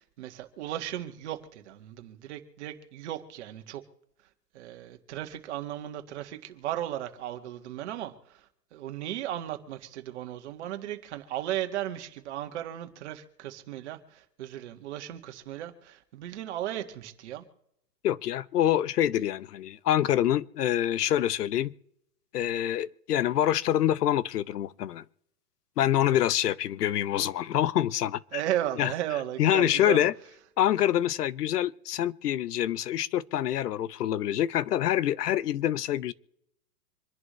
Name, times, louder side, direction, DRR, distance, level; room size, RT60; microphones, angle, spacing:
voice 1, 0.0-3.8 4.5-8.4 8.7-17.4 28.3-30.1, right 12 dB, 45° right, 1.8 m, -35 dB
voice 2, 18.0-21.7 22.3-25.0 25.8-28.4 28.8-28.9 29.4-30.1 30.6-36.1, left 12 dB, 80° left, 0.8 m, -26 dB
26.5 x 11.0 x 3.2 m
hypercardioid pair, 160°, 47 cm